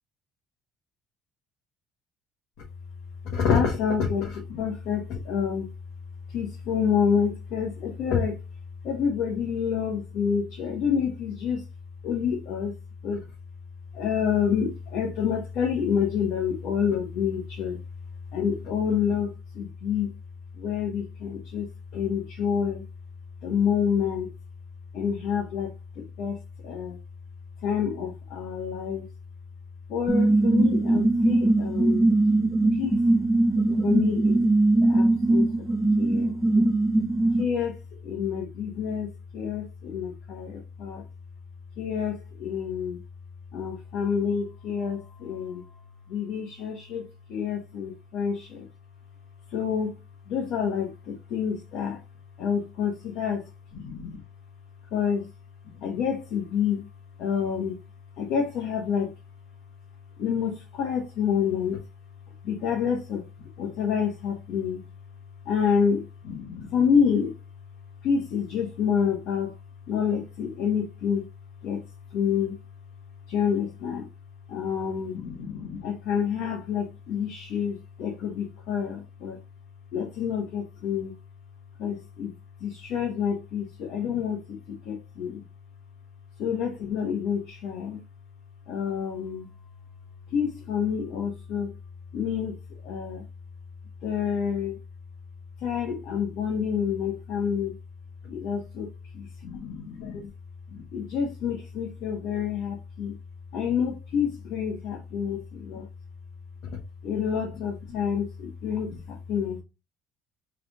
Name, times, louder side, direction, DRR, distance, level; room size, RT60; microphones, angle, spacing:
voice 1, 3.2-5.7 6.3-8.3 8.8-11.6 12.0-12.7 13.0-13.2 13.9-17.8 18.3-20.1 20.6-21.7 21.9-22.8 23.4-24.3 24.9-25.7 26.0-26.4 26.6-27.0 27.6-29.0 29.9-32.0 32.7-33.0 33.8-34.4 34.8-35.6 36.0-36.3 37.4-37.8 38.0-39.1 39.3-41.0 41.8-43.0 43.5-45.6 46.1-48.7 49.5-49.9 50.3-52.0 52.4-53.4 53.7-54.2 54.9-55.3 55.8-56.8 57.2-57.8 58.2-59.1 60.2-61.8 62.4-63.2 63.6-64.8 65.4-67.3 68.0-69.5 69.9-71.2 71.6-71.8 72.1-72.5 73.3-74.0 74.5-79.4 79.9-81.1 81.8-82.3 82.6-85.4 86.4-88.0 88.7-89.5 90.3-91.7 92.1-92.6 92.8-93.2 94.0-94.8 95.6-97.7 98.2-98.9 99.1-100.3 100.7-103.1 103.5-105.9 107.0-109.6, left 7 dB, 70° left, 1.2 m, -28 dB
sound 1, 30.1-37.4, right 2 dB, ahead, 0.8 m, -21 dB
3.3 x 3.3 x 3.8 m
cardioid pair, 105°, 0 cm